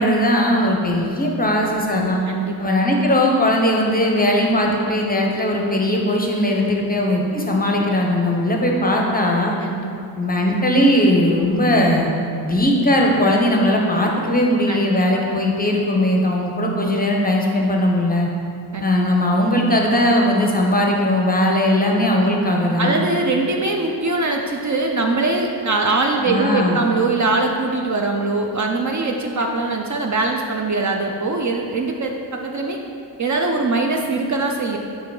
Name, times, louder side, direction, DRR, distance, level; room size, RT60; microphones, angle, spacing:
voice 1, 0.0-2.2 2.6-9.5 10.2-12.1 12.4-18.3 18.8-23.0 26.3-26.8, left 1 dB, 20° left, 0 dB, 0.6 m, -18 dB
voice 2, 2.3-2.7 9.6-9.9 14.7-14.8 15.3-15.4 18.7-18.9 22.8-32.8 33.2-34.8, right 3 dB, 40° right, 2 dB, 0.4 m, -22 dB
7.3 x 3.7 x 4.7 m, 2.5 s
wide cardioid pair, 160°, 45 cm